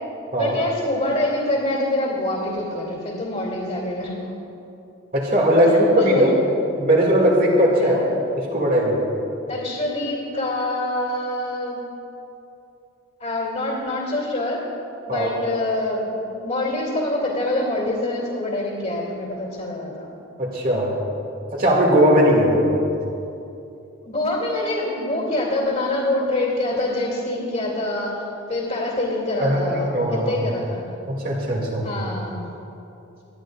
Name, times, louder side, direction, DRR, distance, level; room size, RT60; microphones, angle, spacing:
voice 1, 0.4-4.3 5.9-6.3 7.8-8.1 9.4-11.8 13.2-14.6 15.1-20.1 24.0-28.1 28.5-30.8 31.8-32.4, left 1 dB, 35° left, -5 dB, 2.6 m, -25 dB
voice 2, 5.1-6.3 6.7-8.0 8.4-9.0 15.1-15.4 20.4-20.9 21.5-22.7 29.4-30.4 31.1-31.9, equal, 45° right, -2 dB, 2.3 m, -18 dB
25.5 x 11.0 x 2.5 m, 2.8 s
head